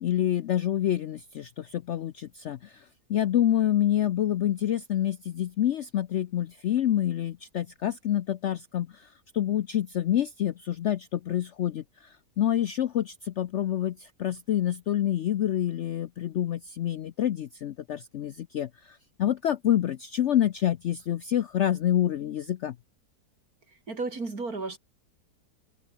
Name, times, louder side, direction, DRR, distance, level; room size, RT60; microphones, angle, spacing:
voice 1, 0.0-2.8 3.1-9.1 9.3-22.7, left 11 dB, 65° left, 0.7 m, -27 dB
voice 2, 23.7-24.8, right 3 dB, 60° right, 4.1 m, -34 dB
omnidirectional pair, 1.7 m